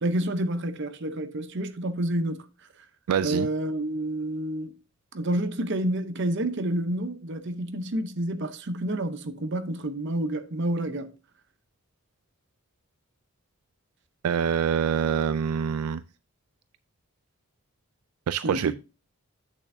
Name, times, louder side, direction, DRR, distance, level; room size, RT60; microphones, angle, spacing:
voice 1, 0.0-2.4 3.2-4.7 5.1-11.1 18.4-18.7, right 1 dB, 55° right, 0.7 m, -29 dB
voice 2, 3.1-3.5 14.2-16.0 18.3-18.7, right 7 dB, 85° right, 0.3 m, -25 dB
8.3 x 6.7 x 2.6 m
head